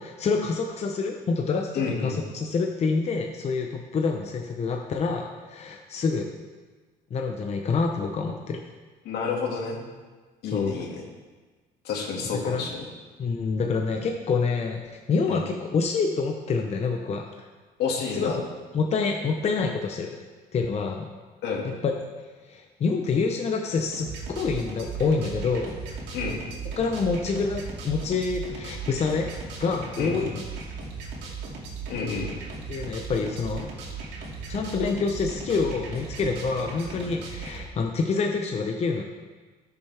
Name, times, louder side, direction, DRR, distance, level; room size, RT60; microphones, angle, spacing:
voice 1, 0.0-6.3 7.1-8.6 10.5-10.8 12.4-12.6 13.2-14.8 15.1-17.5 18.1-18.3 18.7-20.1 20.5-21.1 21.6-21.9 22.5-24.1 24.3-25.8 26.8-30.4 32.7-33.7 34.5-39.0, left 4 dB, 40° left, 2 dB, 0.9 m, -27 dB
voice 2, 1.7-2.2 9.0-9.8 10.4-11.0 11.8-12.8 15.3-15.4 17.8-18.4 21.4-21.7 26.1-26.4 30.0-30.2 31.9-32.3, left 5 dB, 75° left, 0 dB, 2.2 m, -29 dB
sound 1, 23.9-37.6, right 4 dB, 85° right, 2.4 m, -37 dB
14.0 x 7.0 x 3.5 m, 1.3 s
cardioid pair, 110°, 17 cm